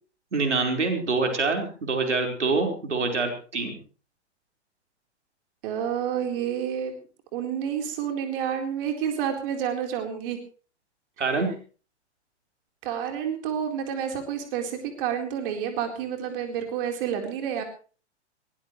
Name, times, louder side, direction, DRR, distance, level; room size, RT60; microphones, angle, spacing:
voice 1, 0.3-3.7 11.2-11.5, right 3 dB, 85° right, 3 dB, 4.7 m, -25 dB
voice 2, 5.6-6.9 7.3-10.4 11.2-11.3 12.8-17.6, right 8 dB, 50° right, 4 dB, 4.1 m, -29 dB
22.0 x 18.5 x 3.2 m, 0.38 s
hypercardioid pair, 110°, 34 cm